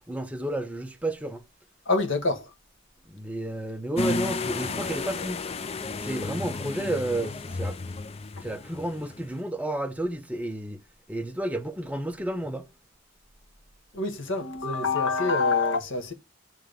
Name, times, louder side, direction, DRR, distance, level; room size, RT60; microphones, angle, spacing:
voice 1, 0.1-1.4 3.1-5.4 6.0-7.8 8.4-10.8 11.1-12.7, right 1 dB, 5° right, 0.8 m, -31 dB
voice 2, 1.8-2.5 13.9-16.1, left 3 dB, 70° left, 1.6 m, -26 dB
sound 1, 4.0-9.4, left 3 dB, 30° left, 0.4 m, -32 dB
9.2 x 3.5 x 5.2 m
head